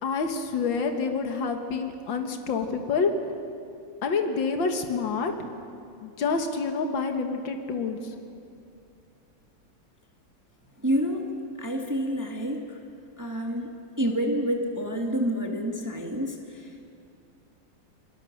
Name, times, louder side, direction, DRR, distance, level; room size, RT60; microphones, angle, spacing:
voice 1, 0.0-3.1 4.0-5.3 6.0-8.1, left 4 dB, 65° left, 5 dB, 2.3 m, -27 dB
voice 2, 10.8-11.3 11.6-12.8 13.2-13.7 14.0-16.7, equal, 10° right, 1 dB, 1.6 m, -28 dB
28.0 x 20.5 x 6.6 m, 2.5 s
omnidirectional pair, 2.3 m